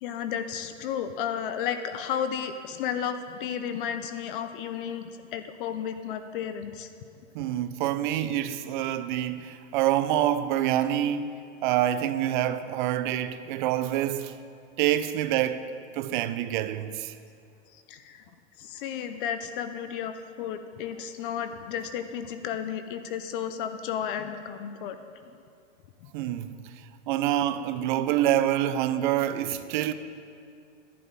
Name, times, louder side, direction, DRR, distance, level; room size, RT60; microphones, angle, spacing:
voice 1, 0.0-6.9 17.7-18.2 18.6-25.0 26.0-26.1, left 8 dB, 45° left, 0.6 m, -33 dB
voice 2, 7.3-14.4 14.8-17.2 26.1-29.9, right 12 dB, 40° right, 0.5 m, -27 dB
11.0 x 11.0 x 4.0 m
supercardioid pair, 145°, 38 cm